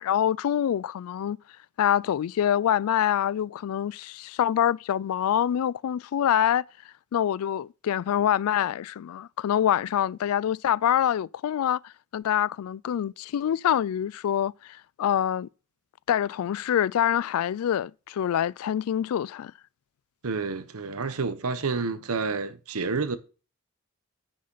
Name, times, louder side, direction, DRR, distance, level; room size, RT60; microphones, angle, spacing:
voice 1, 0.0-1.4 1.8-6.6 7.1-15.5 16.1-19.5, left 10 dB, 75° left, 0.3 m, -25 dB
voice 2, 20.2-23.2, right 4 dB, 80° right, 0.9 m, -29 dB
9.9 x 6.3 x 3.9 m
head